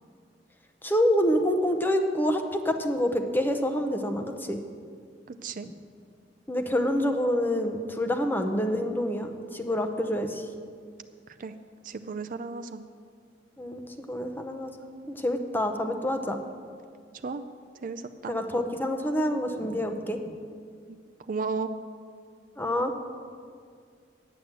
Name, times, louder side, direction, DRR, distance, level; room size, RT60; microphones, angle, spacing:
voice 1, 0.8-4.6 6.5-10.4 13.6-14.7 15.1-16.4 18.3-20.4 22.6-22.9, equal, 10° left, 6 dB, 0.7 m, -27 dB
voice 2, 5.3-5.7 11.4-11.5 11.8-12.8 17.2-17.4 17.8-18.4 20.9-21.7, right 4 dB, 50° right, 9 dB, 0.4 m, -34 dB
9.4 x 8.8 x 7.5 m, 2.1 s
head